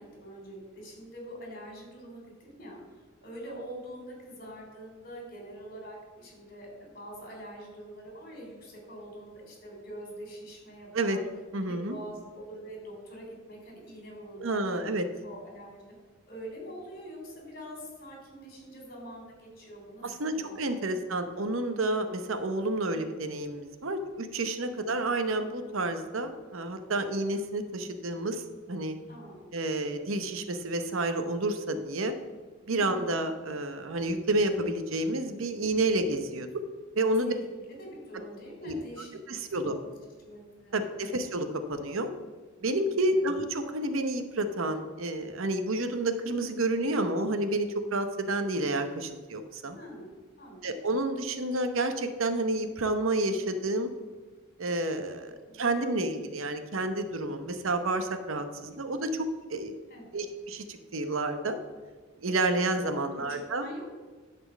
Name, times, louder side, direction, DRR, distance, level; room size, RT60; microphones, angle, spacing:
voice 1, 0.0-2.8 3.2-11.2 11.6-14.9 15.2-15.8 16.3-20.6 20.9-21.3 24.7-24.9 29.1-29.5 32.8-33.2 37.2-39.2 39.5-39.7 40.2-41.1 43.2-43.3 49.7-50.1 50.4-50.7 55.2-55.6 59.9-60.2 63.3-64.0, right 1 dB, 45° left, -1 dB, 3.3 m, -45 dB
voice 2, 11.5-12.0 14.4-15.0 20.0-29.0 29.5-32.1 32.7-36.5 36.9-37.3 38.7-38.8 39.3-39.7 40.7-42.1 42.6-49.8 50.6-53.9 54.6-59.7 60.1-61.6 62.2-63.7, right 2 dB, 70° right, 8 dB, 0.9 m, -30 dB
11.0 x 4.4 x 7.2 m, 1.4 s
head